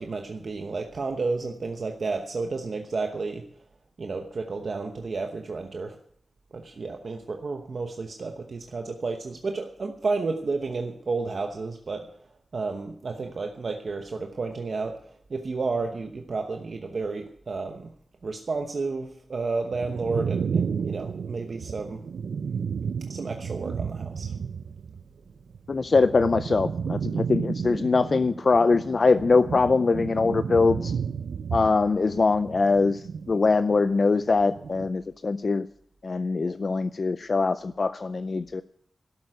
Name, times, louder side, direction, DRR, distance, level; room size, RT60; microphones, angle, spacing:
voice 1, 0.0-3.4 4.0-5.9 6.5-12.1 12.5-15.0 15.3-17.9 18.2-22.0 23.1-24.3, right 3 dB, 50° right, 4 dB, 1.0 m, -31 dB
sound 1, 19.7-25.0 25.3-33.9 34.2-34.9, right 6 dB, 90° right, 0.5 m, -32 dB
voice 2, 25.7-30.9 31.5-35.7 36.0-38.6, left 4 dB, 45° left, 12 dB, 0.4 m, -22 dB
12.5 x 7.9 x 9.1 m, 0.66 s
wide cardioid pair, 130°, 0 cm